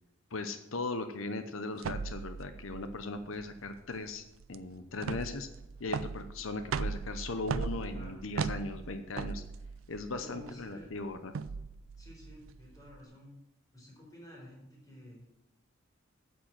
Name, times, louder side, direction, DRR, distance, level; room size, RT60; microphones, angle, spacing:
voice 1, 0.3-5.5 5.8-9.4 9.9-11.3, left 3 dB, 85° left, 8 dB, 0.8 m, -38 dB
sound 1, 1.8-13.0, right 5 dB, 90° right, 0.4 m, -39 dB
voice 2, 7.9-8.6 10.1-10.9 12.0-13.3 13.7-15.3, equal, 20° left, -3 dB, 4.4 m, -51 dB
8.8 x 7.4 x 7.5 m, 0.93 s
head